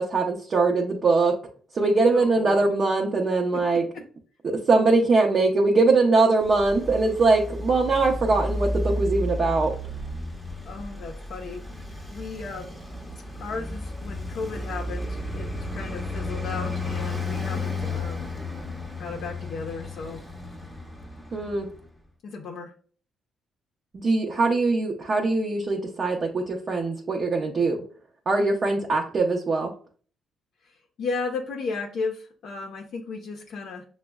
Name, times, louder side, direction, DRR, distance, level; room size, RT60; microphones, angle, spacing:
voice 1, 0.0-1.4 1.7-3.9 4.4-9.7 21.3-21.7 23.9-27.8 28.3-29.7, right 3 dB, 45° right, 0 dB, 0.5 m, -22 dB
voice 2, 2.1-2.6 10.6-11.6 12.1-12.8 13.4-18.3 19.0-20.2 22.2-22.7 31.0-33.8, left 4 dB, 70° left, 1 dB, 0.5 m, -34 dB
Traffic noise roadway noise, 6.4-21.9, left 2 dB, ahead, 0.6 m, -33 dB
5.9 x 2.0 x 2.2 m, 0.43 s
cardioid pair, 90°, 0 cm